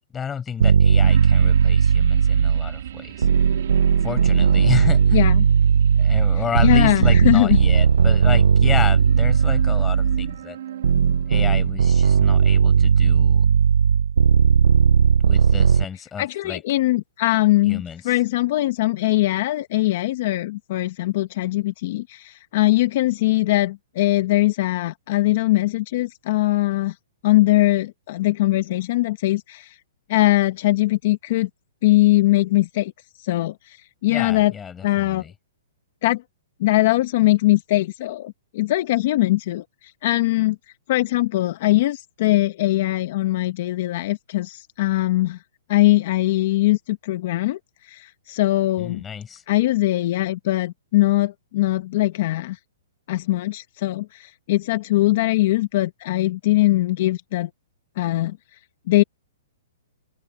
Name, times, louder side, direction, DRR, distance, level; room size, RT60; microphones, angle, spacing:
voice 1, 0.1-3.3 4.0-5.2 6.0-10.6 11.3-13.5 15.2-16.6 17.6-18.2 34.1-35.3 48.8-49.4, left 7 dB, 10° left, 4.5 m, -31 dB
sound 1, 0.6-2.8 3.2-10.3 10.8-15.8, right 6 dB, 85° right, 0.4 m, -17 dB
sound 2, 1.0-12.8 13.2-13.3, right 10 dB, 60° right, 2.4 m, -37 dB
voice 2, 5.1-5.5 6.6-7.6 16.2-26.9 27.2-29.8 30.1-31.5 31.8-32.9 33.2-34.5 34.8-35.2 36.0-36.2 36.6-40.6 40.9-45.4 45.7-49.0 49.5-52.6 53.1-57.5 58.0-58.4 58.9-59.0, left 17 dB, 45° left, 0.9 m, -21 dB
open air
hypercardioid pair, 160°, 0 cm